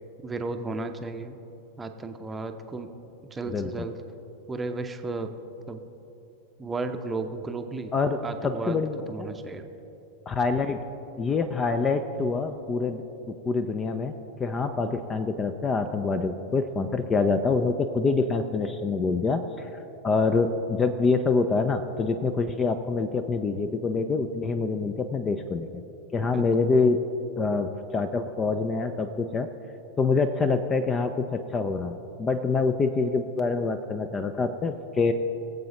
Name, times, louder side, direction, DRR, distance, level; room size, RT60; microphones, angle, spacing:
voice 1, 0.2-1.4 1.8-2.9 3.3-4.0 4.5-5.3 5.7-5.8 6.6-7.9 8.2-8.8 9.1-9.7 26.2-26.4, right 3 dB, 15° right, 6 dB, 0.7 m, -34 dB
voice 2, 3.5-3.9 7.9-9.3 10.3-10.8 11.2-14.1 14.4-19.7 20.0-25.8 26.1-27.0 27.4-29.5 30.0-35.1, left 4 dB, 20° left, 10 dB, 0.5 m, -26 dB
22.0 x 8.0 x 3.0 m, 2.9 s
figure-of-eight pair, 90°, 0 cm